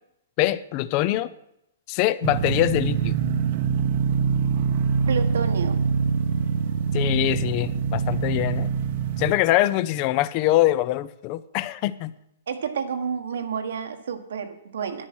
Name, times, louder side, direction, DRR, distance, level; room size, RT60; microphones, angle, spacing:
voice 1, 0.4-1.3 1.9-3.2 6.9-8.7 9.2-12.1, left 15 dB, 30° left, 16 dB, 0.5 m, -23 dB
sound 1, 2.2-9.3, right 6 dB, 45° right, 0.9 m, -24 dB
voice 2, 5.1-5.8 12.5-15.1, right 7 dB, 80° right, 6 dB, 1.6 m, -30 dB
10.0 x 10.0 x 6.2 m, 0.81 s
hypercardioid pair, 160°, 0 cm